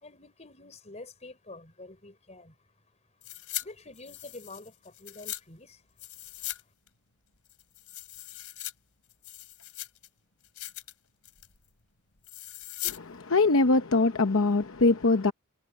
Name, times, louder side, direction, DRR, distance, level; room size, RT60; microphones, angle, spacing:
voice 1, 0.0-2.5 3.6-5.8, left 2 dB, 30° left, 4.8 m, -47 dB
sound 1, 3.2-3.6 3.9-5.4 6.0-6.6 6.9-7.0 7.5-8.7 9.1-10.1 10.4-10.9 11.2-11.6 12.2-13.0 13.3-13.4, left 15 dB, 90° left, 3.1 m, -39 dB
voice 2, 12.8-15.3, left 3 dB, 70° left, 0.9 m, -23 dB
head